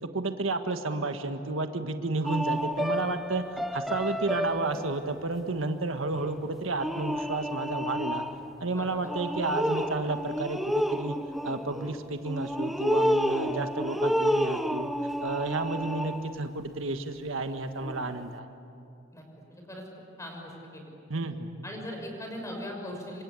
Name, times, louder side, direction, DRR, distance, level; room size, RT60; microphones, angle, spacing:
voice 1, 0.0-3.4 3.7-8.2 8.6-11.2 11.4-14.9 15.2-18.5 21.1-21.5, right 2 dB, 80° right, 7 dB, 1.6 m, -31 dB
sound 1, 2.2-4.9 6.1-6.4 6.8-8.5 9.0-16.4 17.8-18.1, equal, ahead, 0.8 m, -30 dB
voice 2, 19.5-19.8 20.2-20.8 21.1-21.2 21.6-23.2, left 1 dB, 15° left, 1 dB, 5.9 m, -39 dB
27.0 x 25.5 x 8.5 m, 2.6 s
head